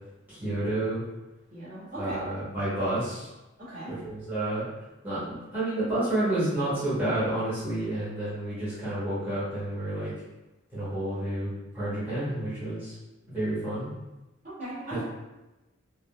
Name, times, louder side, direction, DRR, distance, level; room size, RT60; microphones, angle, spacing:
voice 1, 0.3-1.0 2.0-3.3 3.9-4.6 5.0-10.1 10.7-12.9 13.3-13.9, right 1 dB, 10° right, -14 dB, 1.0 m, -30 dB
voice 2, 1.5-2.2 3.6-4.0 14.4-15.0, right 1 dB, 45° right, -11 dB, 1.4 m, -38 dB
3.5 x 2.2 x 2.3 m, 1.0 s
head